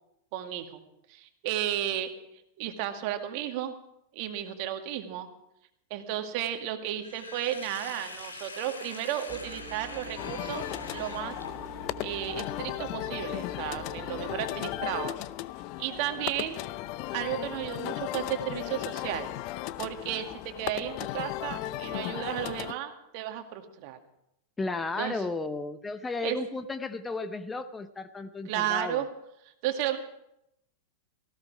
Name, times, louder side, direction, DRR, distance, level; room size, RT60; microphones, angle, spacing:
voice 1, 0.3-0.8 1.1-2.1 2.6-3.7 4.1-5.3 5.9-11.4 12.0-15.2 15.8-16.6 17.1-19.3 19.8-24.0 25.0-25.2 26.2-26.4 28.5-29.1 29.6-30.0, right 11 dB, 50° right, 6 dB, 2.1 m, -33 dB
Sink (filling or washing), 7.0-11.9, left 3 dB, 85° left, 3.0 m, -44 dB
sound 1, 9.3-15.0, right 1 dB, 25° right, 3.7 m, -46 dB
sound 2, 10.2-22.7, left 15 dB, 50° left, 0.6 m, -36 dB
voice 2, 24.6-29.0, left 3 dB, 15° left, 11 dB, 0.8 m, -34 dB
18.0 x 16.0 x 4.8 m, 0.80 s
hypercardioid pair, 95°, 0 cm